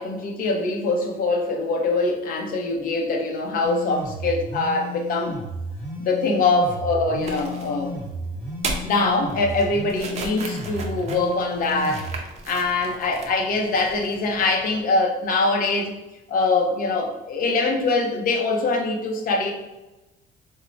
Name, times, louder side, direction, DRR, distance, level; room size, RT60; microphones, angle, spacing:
voice 1, 0.0-5.4 6.0-7.9 8.8-12.0 12.4-15.9 16.3-19.5, left 3 dB, 55° left, 2 dB, 0.6 m, -23 dB
sound 1, 3.6-12.2, left 1 dB, 5° left, 1.1 m, -34 dB
sound 2, 7.2-14.8, right 3 dB, 40° right, 0.5 m, -37 dB
3.1 x 2.0 x 2.5 m, 1.0 s
cardioid pair, 110°, 17 cm